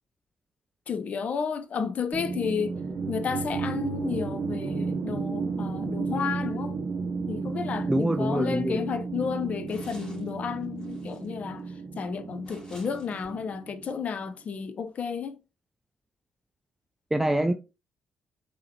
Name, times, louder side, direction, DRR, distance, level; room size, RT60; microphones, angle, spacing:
voice 1, 0.9-2.8 3.1-6.8 7.3-15.4, left 6 dB, 50° left, 0.5 m, -32 dB
sound 1, 2.1-14.3, right 4 dB, 50° right, 0.6 m, -33 dB
sound 2, 7.6-7.7 8.0-8.1 8.6-8.7 9.7-10.3 10.6-11.3 12.4-13.5, left 1 dB, 25° left, 2.1 m, -51 dB
voice 2, 7.9-8.8 17.1-17.5, right 1 dB, 10° right, 0.4 m, -25 dB
3.7 x 3.1 x 2.8 m
hypercardioid pair, 45°, 3 cm